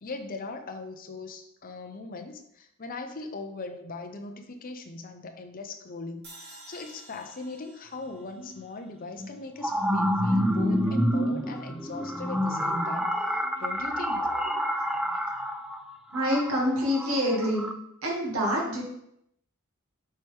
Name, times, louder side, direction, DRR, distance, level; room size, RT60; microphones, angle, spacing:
voice 1, 0.0-14.3, left 3 dB, 45° left, 5 dB, 0.7 m, -39 dB
sound 1, 6.2-9.5, right 2 dB, 55° right, 2.4 m, -51 dB
sound 2, 8.4-8.5 9.2-17.7, equal, 5° right, 0.3 m, -28 dB
voice 2, 16.1-17.7 18.0-18.8, equal, 80° right, -3 dB, 2.1 m, -26 dB
7.4 x 4.7 x 3.5 m, 0.76 s
head